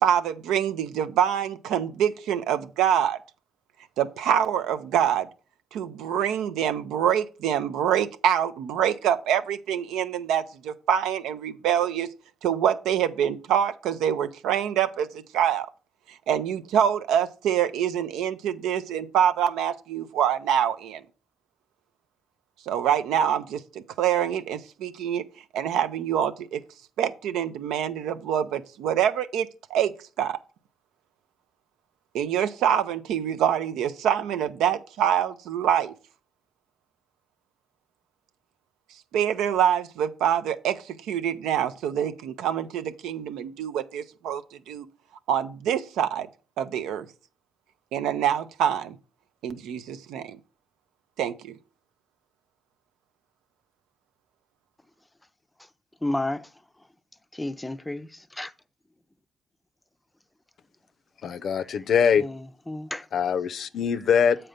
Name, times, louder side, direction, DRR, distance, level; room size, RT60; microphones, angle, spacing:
voice 1, 0.0-3.2 4.0-5.3 5.7-12.1 12.4-15.7 16.3-21.0 22.7-25.2 25.5-26.6 27.0-30.4 32.1-35.9 39.1-44.9 45.3-46.3 46.6-47.1 47.9-48.9 49.4-50.4 51.2-51.5, right 9 dB, 90° right, 0.6 m, -25 dB
voice 2, 56.0-56.5 57.3-58.5 62.2-62.4 62.7-63.0, left 1 dB, 10° left, 0.5 m, -31 dB
voice 3, 61.2-62.3 63.1-64.4, left 7 dB, 60° left, 0.5 m, -22 dB
7.8 x 4.4 x 5.1 m
cardioid pair, 90°, 0 cm